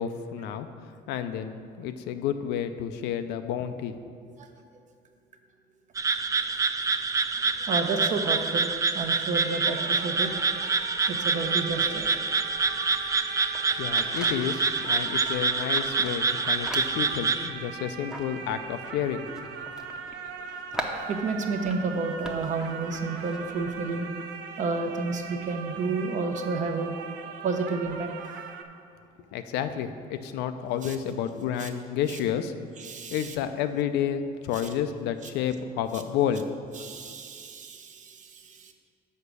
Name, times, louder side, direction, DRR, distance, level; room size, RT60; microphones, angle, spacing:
voice 1, 0.0-4.0 13.8-19.3 29.3-32.5 33.1-36.5, left 9 dB, 90° left, 9 dB, 0.5 m, -30 dB
sound 1, 6.0-17.5, right 4 dB, 20° right, 0.3 m, -27 dB
voice 2, 7.7-10.7 11.1-12.1 21.1-24.1 24.4-27.1 27.4-28.1 30.8-30.9 31.6-31.7 32.1-32.2 32.8-33.3 36.8-38.7, right 4 dB, 45° right, 5 dB, 0.9 m, -31 dB
sound 2, 9.3-28.6, right 6 dB, 85° right, 0.6 m, -40 dB
sound 3, 10.2-24.0, equal, 5° right, 0.7 m, -43 dB
6.6 x 4.9 x 6.8 m, 2.2 s
cardioid pair, 110°, 17 cm